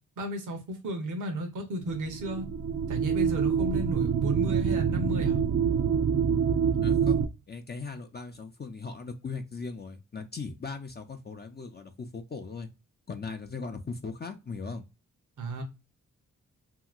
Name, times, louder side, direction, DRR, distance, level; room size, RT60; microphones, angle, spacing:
voice 1, 0.2-2.5 2.9-5.4 15.4-15.6, right 1 dB, 65° right, 0.9 m, -33 dB
sound 1, 1.9-7.3, right 7 dB, 45° right, 0.4 m, -26 dB
voice 2, 6.8-12.7 13.1-14.8, left 4 dB, 30° left, 0.5 m, -39 dB
2.8 x 2.8 x 2.4 m
supercardioid pair, 45°, 33 cm